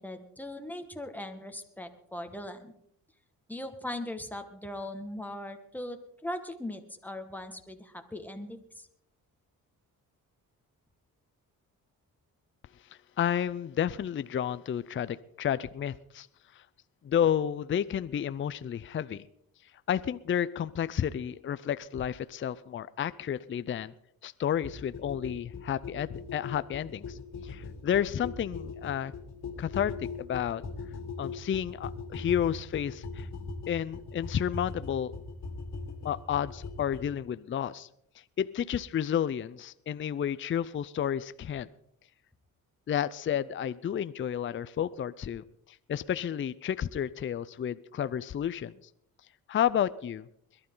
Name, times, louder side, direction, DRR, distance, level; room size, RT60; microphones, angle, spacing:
voice 1, 0.0-2.7 3.5-8.9, left 1 dB, 5° left, 6 dB, 1.7 m, -39 dB
voice 2, 13.2-16.3 16.5-16.6 17.0-19.2 19.9-23.9 24.2-29.1 29.6-30.6 31.2-33.3 33.7-35.1 36.0-37.9 38.4-41.7 42.9-45.4 45.9-48.7 49.5-50.3, left 9 dB, 35° left, 15 dB, 0.5 m, -31 dB
sound 1, 24.6-37.1, left 4 dB, 50° left, 2.4 m, -40 dB
22.0 x 12.0 x 3.9 m, 0.72 s
cardioid pair, 85°, 35 cm